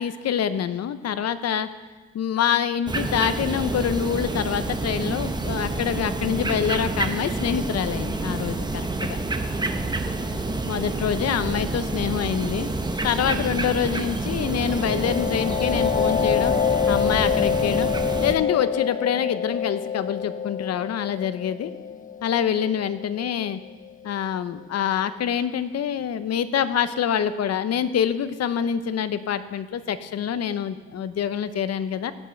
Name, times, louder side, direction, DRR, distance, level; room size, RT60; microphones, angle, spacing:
voice 1, 0.0-1.7 2.1-9.2 10.7-12.7 13.0-16.6 16.9-17.9 18.2-21.7 22.2-23.6 24.0-32.1, left 8 dB, 55° left, 13 dB, 0.8 m, -26 dB
sound 1, 2.9-18.3, right 2 dB, 15° right, 1.0 m, -28 dB
sound 2, 14.4-23.9, left 8 dB, 30° left, 0.4 m, -26 dB
17.0 x 5.7 x 6.5 m, 1.3 s
cardioid pair, 90°, 30 cm